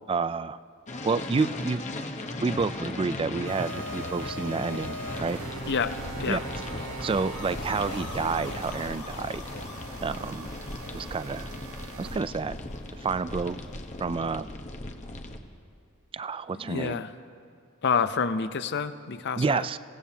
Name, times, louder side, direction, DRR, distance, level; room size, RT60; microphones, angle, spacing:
voice 1, 0.1-0.6 1.0-1.8 2.4-5.4 6.3-6.4 7.0-9.4 10.0-10.5 10.9-11.5 12.0-12.6 13.0-13.6 14.0-14.5 16.1-17.0 19.4-19.8, right 4 dB, 25° right, 15 dB, 0.3 m, -29 dB
sound 1, 0.9-15.4, left 2 dB, 35° left, 1.0 m, -37 dB
sound 2, 3.4-12.3, right 3 dB, 75° right, 0.6 m, -42 dB
sound 3, 4.8-14.1, left 3 dB, 80° left, 2.7 m, -45 dB
voice 2, 5.7-6.4 16.5-17.1 17.8-19.7, left 5 dB, 55° left, 12 dB, 0.6 m, -28 dB
28.0 x 17.0 x 2.8 m, 2.4 s
head